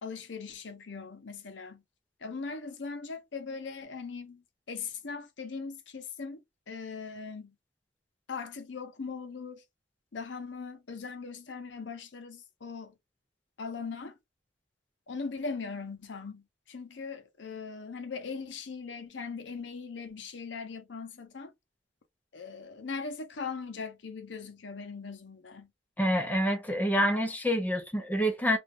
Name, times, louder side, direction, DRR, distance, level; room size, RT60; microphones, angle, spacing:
voice 1, 0.0-1.8 2.2-4.4 4.7-6.4 6.7-7.5 8.3-9.6 10.1-12.9 13.6-14.2 15.1-21.5 22.3-25.7, left 4 dB, 75° left, 0.7 m, -40 dB
voice 2, 26.0-28.6, equal, 10° left, 0.6 m, -27 dB
3.3 x 2.4 x 2.5 m
head